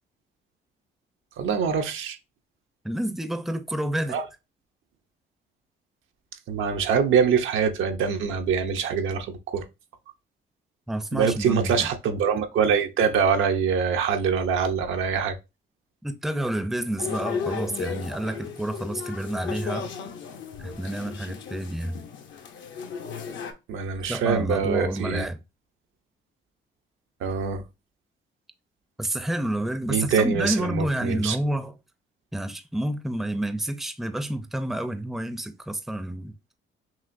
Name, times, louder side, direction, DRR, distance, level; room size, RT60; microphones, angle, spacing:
voice 1, 1.4-2.2 4.1-4.2 6.5-9.6 11.1-15.3 23.7-25.3 27.2-27.6 29.9-31.4, right 6 dB, 80° right, 0.7 m, -24 dB
voice 2, 2.8-4.2 10.9-11.9 16.0-19.9 20.6-22.0 24.1-25.4 29.0-31.8 32.3-36.3, right 1 dB, ahead, 0.5 m, -29 dB
sound 1, 17.0-23.5, left 6 dB, 70° left, 0.7 m, -35 dB
5.8 x 2.5 x 2.5 m
cardioid pair, 90°, 20 cm